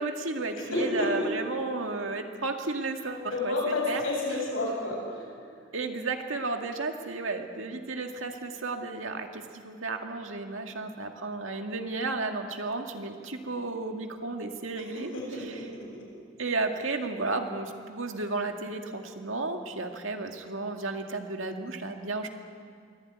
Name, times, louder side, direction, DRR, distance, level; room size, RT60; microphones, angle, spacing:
voice 1, 0.0-4.0 5.7-15.6 16.4-22.3, right 3 dB, 75° right, 4 dB, 2.0 m, -33 dB
voice 2, 0.6-1.3 3.3-5.3 14.9-16.0, left 2 dB, 90° left, -2 dB, 7.6 m, -30 dB
23.5 x 15.5 x 9.5 m, 2.2 s
head